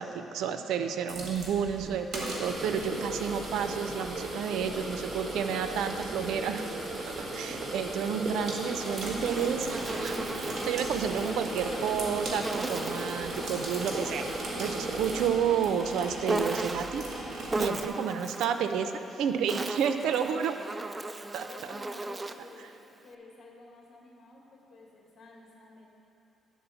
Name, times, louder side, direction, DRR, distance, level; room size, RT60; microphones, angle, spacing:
voice 1, 0.0-6.6 7.1-10.2 10.6-14.3 14.6-17.1 17.6-18.9 19.2-20.5 21.3-21.5, right 7 dB, 85° right, 8 dB, 0.5 m, -30 dB
sound 1, 1.1-17.9, right 1 dB, 55° right, 1.9 m, -39 dB
sound 2, 2.4-15.3, right 2 dB, 40° right, 1.5 m, -36 dB
voice 2, 7.1-7.7 18.4-19.0 20.1-20.5 21.0-25.9, left 2 dB, 55° left, -2 dB, 1.8 m, -52 dB
Insect, 9.2-11.4 12.4-14.5 16.3-17.1 17.5-18.6 19.3-22.5, right 2 dB, 25° right, 0.3 m, -36 dB
10.5 x 4.2 x 7.0 m, 2.7 s
cardioid pair, 90°, 0 cm